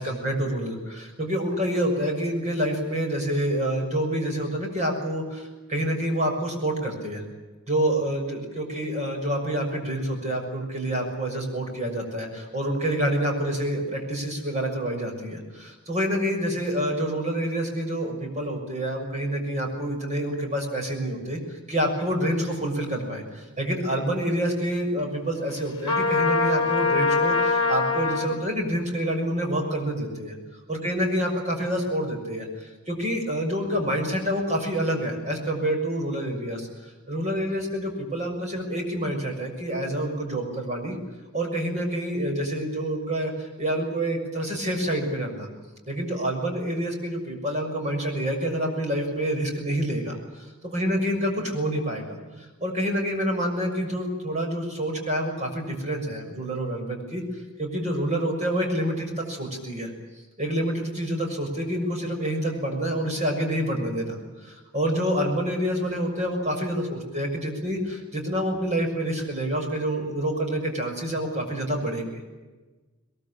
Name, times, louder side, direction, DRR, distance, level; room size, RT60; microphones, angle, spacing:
voice 1, 0.0-7.2 7.7-21.4 21.7-30.3 30.7-41.0 41.3-45.5 45.9-57.2 57.6-59.9 60.4-72.2, right 1 dB, 30° right, 2 dB, 6.5 m, -27 dB
Trumpet, 25.8-28.4, left 3 dB, 25° left, 4.1 m, -23 dB
22.5 x 22.0 x 8.7 m, 1.2 s
head